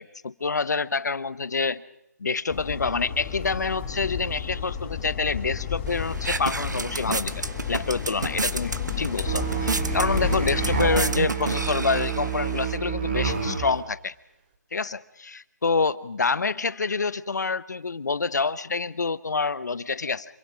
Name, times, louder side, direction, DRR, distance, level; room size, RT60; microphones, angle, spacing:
voice 1, 0.0-1.8 2.2-14.1 14.7-20.3, left 4 dB, 75° left, 17 dB, 0.9 m, -27 dB
sound 1, 2.5-11.0, left 7 dB, 25° left, 5.4 m, -32 dB
sound 2, 5.9-12.8, right 3 dB, 85° right, 1.2 m, -31 dB
Musical instrument, 9.3-13.8, right 7 dB, 35° right, 3.0 m, -28 dB
26.5 x 23.0 x 5.1 m, 0.85 s
figure-of-eight pair, 155°, 9 cm